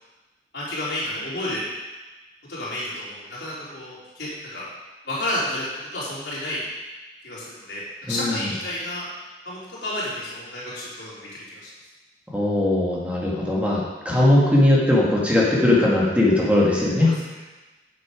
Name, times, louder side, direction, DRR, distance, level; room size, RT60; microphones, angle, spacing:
voice 1, 0.5-1.6 2.5-4.6 5.1-5.6 5.9-6.6 7.2-9.1 9.5-11.6 17.0-17.1, left 1 dB, 90° left, -8 dB, 3.5 m, -31 dB
voice 2, 8.1-8.5 12.3-17.1, left 1 dB, 10° right, -5 dB, 1.8 m, -19 dB
8.4 x 6.8 x 5.0 m, 1.2 s
head